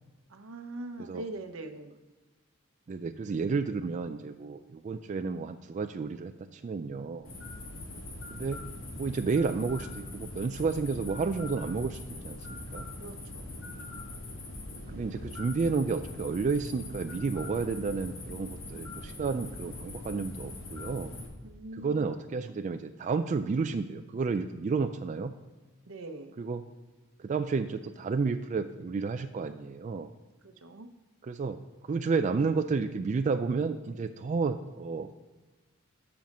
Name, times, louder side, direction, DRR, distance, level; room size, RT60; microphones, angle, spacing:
voice 1, 0.3-2.0 13.0-13.6 21.4-22.1 25.8-26.5 30.4-30.9, right 2 dB, 85° right, 7 dB, 0.8 m, -42 dB
voice 2, 2.9-7.3 8.3-8.6 9.0-12.9 14.9-21.1 21.8-25.3 26.4-26.6 27.2-30.1 31.3-31.6 31.8-35.2, right 4 dB, 35° right, 8 dB, 0.3 m, -31 dB
sound 1, 7.2-21.3, left 2 dB, 75° left, 1.7 m, -42 dB
7.3 x 5.8 x 5.2 m, 1.2 s
head